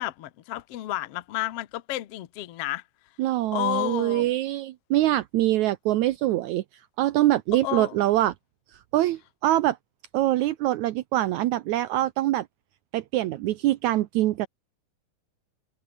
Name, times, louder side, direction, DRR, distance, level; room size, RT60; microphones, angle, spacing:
voice 1, 0.0-2.8 3.5-4.3 7.6-8.0, left 15 dB, 70° left, 1.4 m, -31 dB
voice 2, 3.2-6.6 7.0-8.3 8.9-9.8 10.1-12.5 12.9-14.5, right 15 dB, 80° right, 1.7 m, -24 dB
omnidirectional pair, 4.3 m